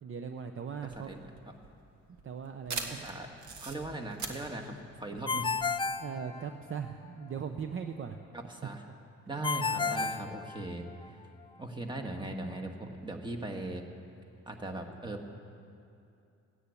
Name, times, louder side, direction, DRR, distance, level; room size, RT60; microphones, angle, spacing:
voice 1, 0.0-1.4 2.2-3.0 6.0-8.2 9.8-10.3, right 7 dB, 45° right, 7 dB, 0.7 m, -40 dB
sound 1, 0.8-5.9, right 4 dB, 70° right, 1.6 m, -42 dB
voice 2, 2.9-3.3 3.6-5.5 8.3-8.8 9.3-11.2 11.6-13.8 14.4-15.3, right 2 dB, 15° right, 2 dB, 1.6 m, -39 dB
Ringtone, 5.3-6.9 9.4-11.1, left 4 dB, 15° left, 0.4 m, -32 dB
15.0 x 10.0 x 8.4 m, 2.5 s
cardioid pair, 90°, 30 cm